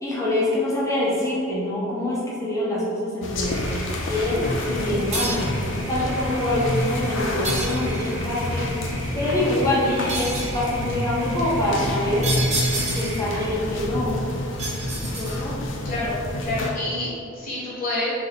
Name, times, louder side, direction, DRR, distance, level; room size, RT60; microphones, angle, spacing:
voice 1, 0.0-3.7 4.1-8.8 9.1-12.4 12.9-14.2 15.1-15.6, left 1 dB, 15° left, -7 dB, 0.8 m, -25 dB
sound 1, 3.2-16.7, left 1 dB, 60° left, 0.5 m, -28 dB
sound 2, 3.5-13.5, right 2 dB, 65° right, 0.6 m, -39 dB
sound 3, 5.1-5.6 7.4-8.2 10.1-10.6 12.2-13.3 14.6-15.6, right 2 dB, 35° right, 1.0 m, -29 dB
voice 2, 11.6-12.2 15.8-18.1, left 2 dB, 40° left, -8 dB, 1.4 m, -29 dB
3.5 x 3.3 x 3.8 m, 2.5 s
head